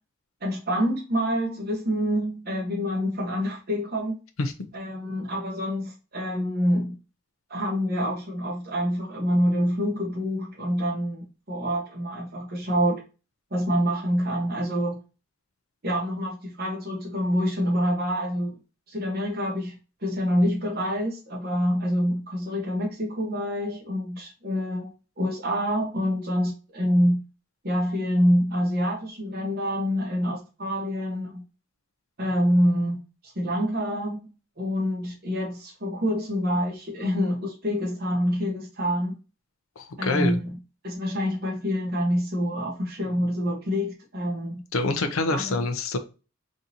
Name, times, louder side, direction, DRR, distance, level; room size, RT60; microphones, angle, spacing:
voice 1, 0.4-4.1 4.7-7.0 7.5-13.0 13.5-15.0 15.8-18.6 18.9-24.9 25.2-27.2 27.6-31.4 32.2-33.0 33.3-34.2 34.6-39.1 40.0-40.6 40.8-44.6 45.3-45.6, equal, 50° right, 1.1 m, -26 dB
voice 2, 39.8-40.4 44.7-46.0, left 2 dB, 85° left, 0.5 m, -26 dB
3.7 x 2.7 x 2.7 m
head